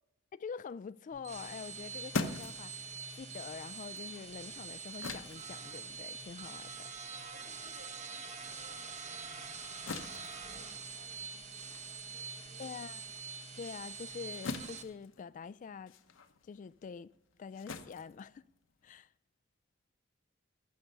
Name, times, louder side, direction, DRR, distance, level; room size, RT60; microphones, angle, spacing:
voice 1, 0.3-6.9 12.6-13.0 13.6-15.9 16.4-17.1 17.4-18.5 18.8-19.1, left 6 dB, 40° left, 0.3 m, -46 dB
sound 1, 1.1-14.8, right 5 dB, 35° right, 1.0 m, -45 dB
sound 2, 1.6-8.4 8.8-19.0, left 3 dB, 75° left, 0.9 m, -45 dB
voice 2, 7.1-9.5 10.4-12.8, equal, 60° right, 2.0 m, -62 dB
15.0 x 5.8 x 5.3 m
head